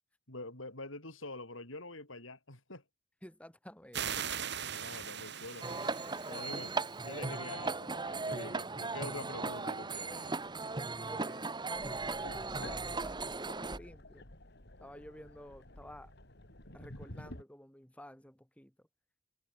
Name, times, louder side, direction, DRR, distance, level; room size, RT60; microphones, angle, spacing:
voice 1, 0.3-2.8 4.7-6.0 6.3-10.4, left 2 dB, 75° left, 7.6 m, -46 dB
voice 2, 3.2-4.2 11.1-14.2 14.8-16.1 16.7-18.7, equal, 5° left, 7.1 m, -52 dB
sound 1, 3.9-7.2, right 8 dB, 60° right, 5.5 m, -40 dB
sound 2, 5.6-13.8, right 3 dB, 20° right, 1.2 m, -37 dB
sound 3, 11.7-17.4, left 1 dB, 60° left, 6.0 m, -50 dB
head